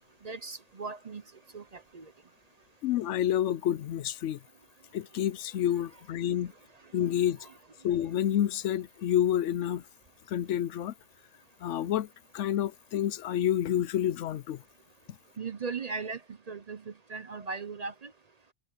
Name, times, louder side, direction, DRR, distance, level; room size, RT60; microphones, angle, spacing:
voice 1, 0.2-1.2 1.5-1.6 1.9-2.0 15.4-16.2 16.5-18.1, right 4 dB, 40° right, 0.7 m, -37 dB
voice 2, 2.8-4.4 4.9-6.5 6.9-7.4 7.8-9.8 10.3-10.9 11.6-12.1 12.3-14.6, left 11 dB, 80° left, 0.9 m, -28 dB
omnidirectional pair, 1.2 m